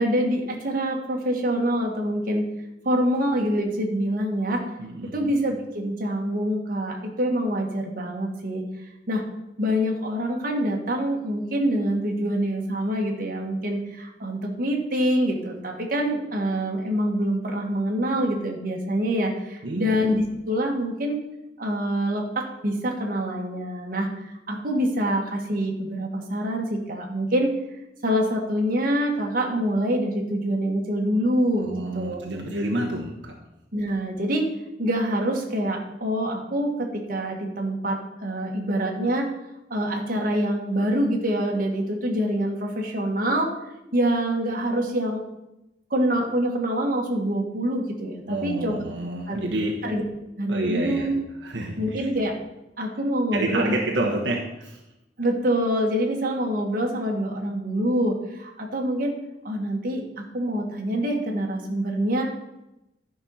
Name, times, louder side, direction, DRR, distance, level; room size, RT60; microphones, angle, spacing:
voice 1, 0.0-2.4 2.9-4.6 5.1-8.6 9.1-9.2 9.6-21.2 21.6-27.5 28.0-32.2 33.7-34.5 34.8-39.3 39.7-43.5 43.9-45.2 45.9-48.8 49.3-49.5 49.8-50.0 50.4-51.2 51.8-52.3 52.8-53.7 55.2-59.1 59.4-62.2, equal, 50° right, 1 dB, 1.8 m, -25 dB
voice 2, 4.8-5.3 19.6-20.0 31.6-33.4 48.3-49.8 50.5-51.1 51.4-52.1 53.3-54.8, right 1 dB, 80° right, 0 dB, 1.2 m, -29 dB
11.5 x 5.5 x 5.7 m, 0.92 s
head